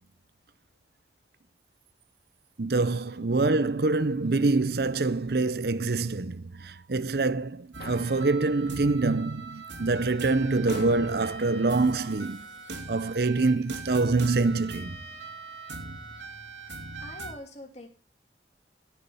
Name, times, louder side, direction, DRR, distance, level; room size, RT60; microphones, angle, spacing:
voice 1, 2.6-12.5 12.9-15.0, right 3 dB, 55° right, 0.7 m, -25 dB
sound 1, 7.7-17.3, right 3 dB, 85° right, 2.8 m, -41 dB
sound 2, 7.8-9.8 10.7-12.6, left 1 dB, 55° left, 1.9 m, -46 dB
voice 2, 17.0-17.9, left 2 dB, 35° left, 2.9 m, -43 dB
15.5 x 7.2 x 7.1 m
head